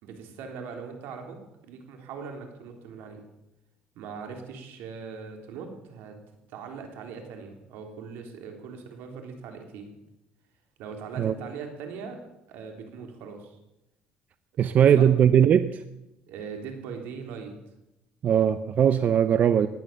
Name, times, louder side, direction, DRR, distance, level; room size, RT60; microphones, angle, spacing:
voice 1, 0.0-1.4 1.6-3.2 4.0-6.2 6.5-9.9 10.8-12.2 12.5-13.6 14.6-15.0 16.3-17.5, right 5 dB, 85° right, 4 dB, 3.6 m, -40 dB
voice 2, 14.6-15.8 18.2-19.7, right 9 dB, 50° right, 12 dB, 0.7 m, -20 dB
18.0 x 11.0 x 6.9 m, 0.89 s
cardioid pair, 115°, 3 cm